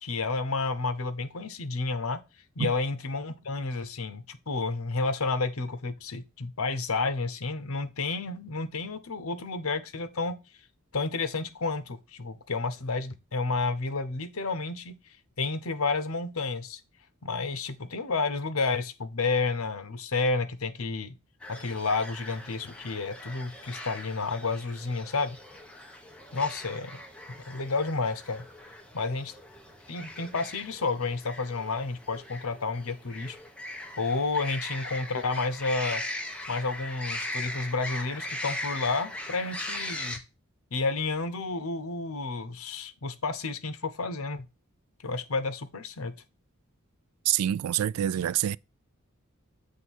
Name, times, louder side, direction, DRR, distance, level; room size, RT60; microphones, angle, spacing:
voice 1, 0.0-2.2 2.6-10.4 10.9-15.0 15.4-16.8 17.2-21.2 21.5-25.4 26.3-27.0 27.3-28.4 28.9-29.3 29.9-33.4 34.0-36.0 36.5-40.2 40.7-44.4 45.0-46.1, left 3 dB, 75° left, 0.9 m, -31 dB
sound 1, 21.4-40.2, left 1 dB, 5° left, 1.0 m, -40 dB
voice 2, 47.3-48.6, right 11 dB, 85° right, 0.3 m, -26 dB
7.6 x 3.3 x 6.3 m
head